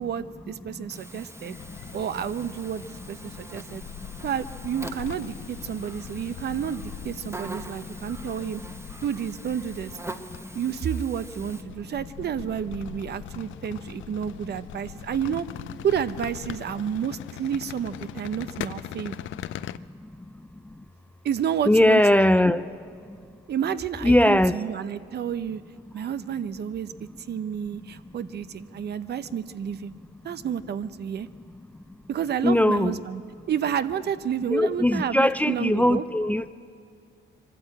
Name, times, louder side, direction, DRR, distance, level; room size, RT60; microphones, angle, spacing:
voice 1, 0.0-1.6 1.9-3.8 4.2-8.6 9.0-9.9 10.5-15.5 15.8-19.3 21.2-22.5 23.5-25.6 25.9-26.9 27.3-29.9 30.2-31.3 32.1-33.2 33.5-36.0, right 8 dB, 55° right, 13 dB, 0.7 m, -30 dB
Buzz, 0.9-11.6, right 2 dB, 15° right, 1.0 m, -43 dB
sound 1, 1.5-19.8, left 13 dB, 75° left, 0.5 m, -41 dB
voice 2, 21.7-22.6 24.0-24.5 32.4-32.9 34.5-36.5, left 1 dB, 5° left, 13 dB, 0.5 m, -20 dB
23.0 x 13.0 x 8.7 m, 2.2 s
cardioid pair, 90°, 20 cm